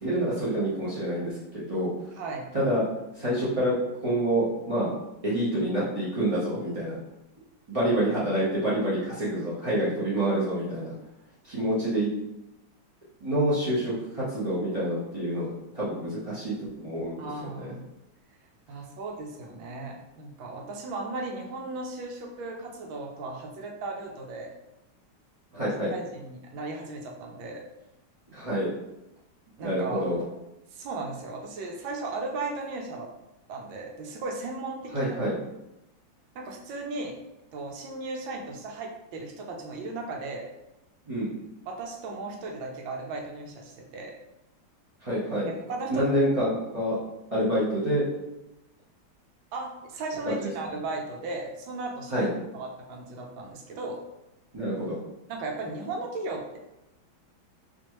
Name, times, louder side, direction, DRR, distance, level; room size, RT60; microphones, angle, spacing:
voice 1, 0.0-1.9 2.5-2.8 3.1-3.7 4.0-4.9 5.2-7.0 7.7-10.9 11.4-12.1 13.2-17.3 17.5-17.7 25.5-25.9 28.3-28.7 29.6-30.2 34.9-35.4 41.1-41.3 45.0-45.5 45.9-47.0 47.3-48.0 50.3-50.5 52.1-52.3 54.5-55.0, right 1 dB, 55° right, -10 dB, 0.3 m, -27 dB
voice 2, 17.2-17.8 18.7-24.5 25.9-27.6 29.6-30.1 30.7-33.1 33.5-35.2 36.3-37.1 37.5-40.4 41.7-44.1 45.5-46.1 49.5-54.0 55.3-56.6, right 3 dB, 75° right, 0 dB, 1.4 m, -36 dB
4.2 x 2.7 x 3.0 m, 0.92 s
omnidirectional pair, 2.3 m